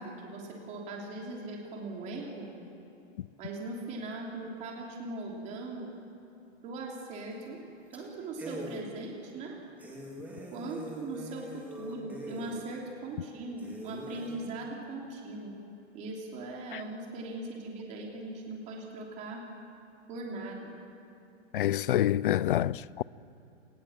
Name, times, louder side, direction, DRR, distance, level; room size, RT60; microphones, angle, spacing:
voice 1, 0.0-2.5 3.4-5.9 6.6-7.6 7.9-9.6 10.5-15.5 15.9-19.5 20.1-20.8, right 2 dB, 20° right, 3.1 m, -40 dB
sound 1, 7.3-7.6 7.9-8.0 8.4-8.8 9.3-9.4 9.8-12.6 13.1-13.2 13.6-14.4, right 1 dB, 5° right, 2.4 m, -43 dB
voice 2, 21.5-23.0, left 12 dB, 50° left, 0.4 m, -27 dB
29.0 x 19.5 x 7.3 m
hypercardioid pair, 170°, 36 cm